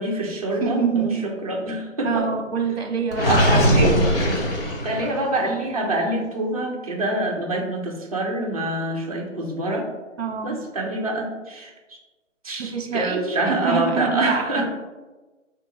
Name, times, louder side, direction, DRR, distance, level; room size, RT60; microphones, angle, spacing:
voice 1, 0.0-2.3 3.3-4.0 4.8-9.9 10.4-12.0 12.4-14.6, right 1 dB, 30° right, -1 dB, 0.6 m, -26 dB
voice 2, 0.6-1.3 2.0-3.4 10.2-10.6 12.6-14.6, right 6 dB, 50° right, 4 dB, 0.9 m, -25 dB
Gurgling, 3.1-5.3, equal, 45° left, 1.3 m, -20 dB
3.8 x 2.5 x 4.7 m, 1.2 s
hypercardioid pair, 165°, 38 cm